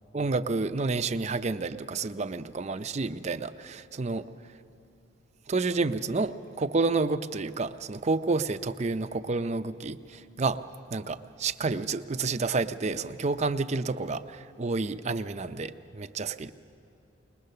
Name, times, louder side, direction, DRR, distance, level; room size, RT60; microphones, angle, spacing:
voice 1, 0.1-4.3 5.5-10.6 10.9-16.5, right 3 dB, 35° right, 9 dB, 0.5 m, -30 dB
21.5 x 20.5 x 6.7 m, 2.9 s
head